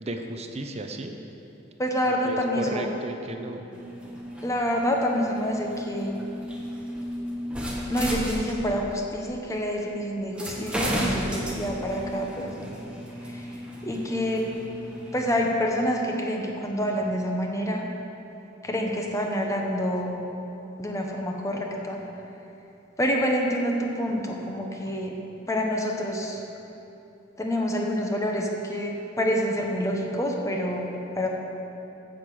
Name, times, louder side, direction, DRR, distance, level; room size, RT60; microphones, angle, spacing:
voice 1, 0.0-1.1 2.2-3.6, right 2 dB, 30° right, 5 dB, 0.7 m, -34 dB
voice 2, 1.8-2.9 4.4-6.2 7.9-12.8 13.3-13.5 13.8-14.5 15.1-17.9 18.6-20.1 20.8-22.0 23.0-25.1 25.5-26.4 27.4-30.9 31.1-31.3, equal, 15° left, 1 dB, 0.9 m, -27 dB
sound 1, 3.7-8.9 9.8-9.9 10.4-15.4, equal, 5° right, 1.1 m, -34 dB
8.3 x 6.7 x 7.6 m, 2.9 s
head